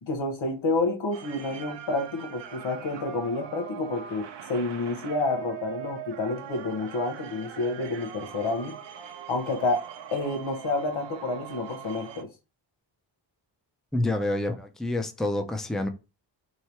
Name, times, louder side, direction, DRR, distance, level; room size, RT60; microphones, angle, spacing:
voice 1, 0.0-8.8 9.3-9.8 10.1-12.3, left 2 dB, 90° left, 1.0 m, -29 dB
sound 1, 1.1-12.2, right 8 dB, 70° right, 0.6 m, -42 dB
voice 2, 13.9-15.9, left 1 dB, ahead, 0.5 m, -28 dB
3.1 x 2.7 x 4.4 m
wide cardioid pair, 90°, 45 cm